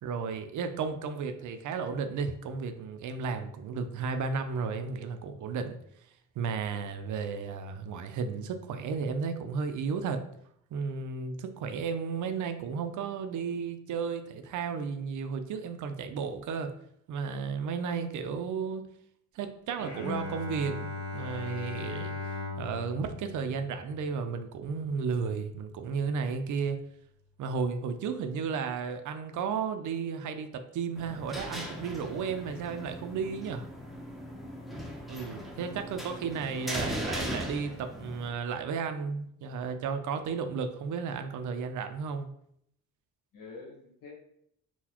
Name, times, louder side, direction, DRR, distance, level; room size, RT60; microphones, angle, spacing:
voice 1, 0.0-5.8 6.4-10.2 10.7-16.7 17.1-18.9 19.3-22.1 22.6-26.8 27.4-33.7 35.1-42.3, right 5 dB, 65° right, 8 dB, 0.5 m, -33 dB
Bowed string instrument, 19.8-25.1, left 3 dB, 55° left, 0.8 m, -39 dB
sound 1, 31.0-38.3, equal, ahead, 0.6 m, -39 dB
voice 2, 36.5-37.1 43.3-44.1, left 4 dB, 75° left, -1 dB, 1.2 m, -50 dB
3.9 x 2.2 x 2.9 m, 0.71 s
cardioid pair, 90°, 33 cm